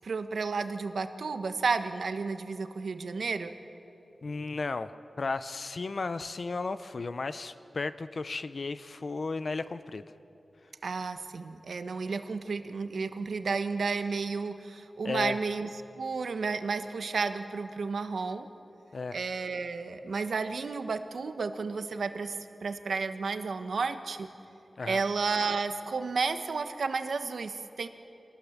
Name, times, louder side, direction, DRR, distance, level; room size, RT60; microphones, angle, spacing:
voice 1, 0.0-3.5 10.8-15.7 16.0-18.5 19.1-24.3 24.9-27.9, right 4 dB, 85° right, 8 dB, 1.1 m, -32 dB
voice 2, 4.2-4.9 5.2-10.0 15.0-15.4 18.9-19.2 24.8-25.0, left 3 dB, 55° left, 12 dB, 0.6 m, -34 dB
25.0 x 19.0 x 7.3 m, 2.8 s
wide cardioid pair, 105°, 0 cm